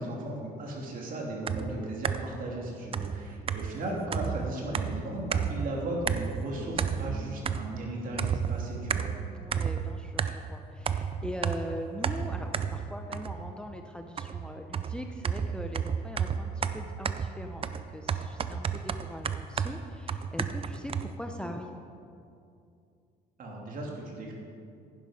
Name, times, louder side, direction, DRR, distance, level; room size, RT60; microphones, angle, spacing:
voice 1, 0.0-9.1 23.4-24.3, right 1 dB, 55° right, -1 dB, 2.8 m, -36 dB
sound 1, 1.5-2.4 2.9-5.7 6.1-6.5 6.8-7.9 8.2-10.5 10.9-13.6 14.2-21.1, right 7 dB, 35° right, 0.5 m, -32 dB
voice 2, 7.0-7.5 9.3-21.8, equal, 5° left, 4 dB, 0.7 m, -41 dB
11.0 x 10.0 x 5.1 m, 2.5 s
cardioid pair, 110°, 17 cm